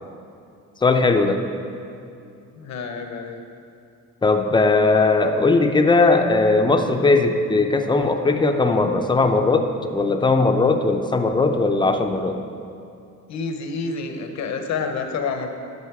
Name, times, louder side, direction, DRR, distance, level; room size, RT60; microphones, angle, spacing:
voice 1, 0.8-1.4 4.2-12.4, left 3 dB, 15° left, 5 dB, 0.6 m, -18 dB
voice 2, 2.5-3.4 13.3-15.5, left 4 dB, 65° left, 5 dB, 0.9 m, -28 dB
12.0 x 4.1 x 4.8 m, 2.6 s
cardioid pair, 90°, 30 cm